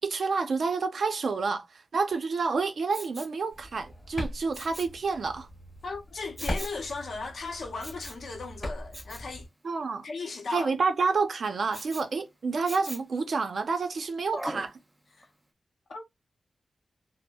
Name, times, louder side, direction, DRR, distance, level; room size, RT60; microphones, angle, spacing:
voice 1, 0.0-1.7 1.9-5.5 9.6-10.1 10.5-14.7, right 4 dB, 55° right, 0.5 m, -29 dB
Respiratory sounds, 2.9-3.4 4.5-5.0 6.4-6.8 7.8-8.3 8.9-9.3 11.7-12.1 12.7-13.2 14.3-14.7 15.2-15.3, right 1 dB, 10° right, 0.5 m, -40 dB
sound 1, 3.5-9.5, equal, 15° left, 2.3 m, -40 dB
voice 2, 5.8-9.4 10.0-10.7 15.1-15.3 15.9-16.1, left 4 dB, 60° left, 0.6 m, -36 dB
4.2 x 2.0 x 2.3 m
wide cardioid pair, 160°, 0 cm